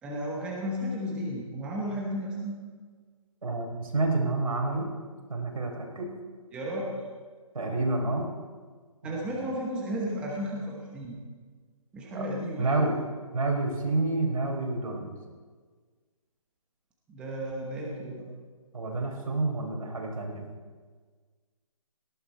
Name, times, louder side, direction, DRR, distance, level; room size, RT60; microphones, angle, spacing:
voice 1, 0.0-2.6 6.5-7.0 9.0-11.2 11.9-12.9 17.1-18.3, equal, 5° right, -3 dB, 1.0 m, -33 dB
voice 2, 3.4-4.9 5.3-6.1 7.5-8.3 9.0-9.1 12.1-12.3 12.6-12.9 13.3-15.1 18.7-20.5, right 2 dB, 75° right, 1 dB, 4.2 m, -29 dB
18.0 x 12.5 x 4.2 m, 1.5 s
hypercardioid pair, 170°, 18 cm